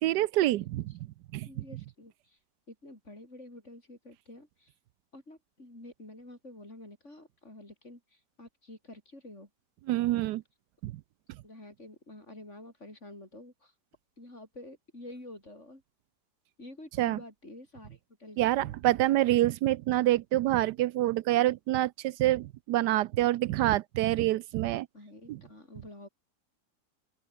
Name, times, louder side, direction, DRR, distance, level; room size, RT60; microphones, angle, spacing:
voice 1, 0.0-0.9 1.3-1.5 9.9-10.4 10.8-10.9 17.0-17.2 18.4-24.9 25.3-25.4, right 15 dB, 80° right, 1.2 m, -26 dB
voice 2, 1.5-2.4 2.7-4.7 5.1-9.5 11.4-13.7 14.2-15.8 16.6-18.8 24.9-26.1, left 1 dB, 45° left, 7.7 m, -49 dB
open air
omnidirectional pair, 1.8 m